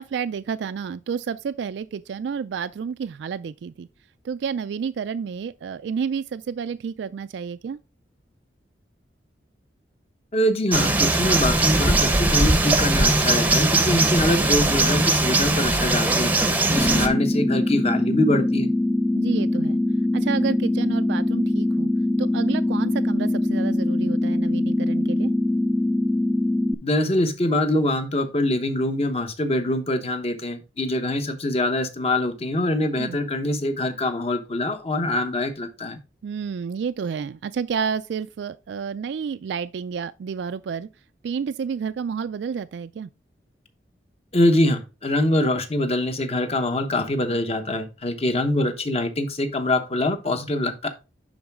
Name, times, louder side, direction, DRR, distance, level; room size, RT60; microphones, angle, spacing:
voice 1, 0.0-3.9 4.2-7.8 16.7-17.0 19.1-19.8 20.1-21.9 22.2-25.3 33.0-33.2 36.2-40.9 41.2-43.1, right 6 dB, 70° right, 0.3 m, -30 dB
voice 2, 10.3-16.3 16.7-18.7 26.8-36.0 44.3-50.9, left 1 dB, 35° left, 0.9 m, -24 dB
sound 1, 10.7-17.1, right 2 dB, 10° right, 0.7 m, -20 dB
sound 2, 16.7-26.7, left 1 dB, 5° left, 0.3 m, -22 dB
10.5 x 4.0 x 3.5 m
head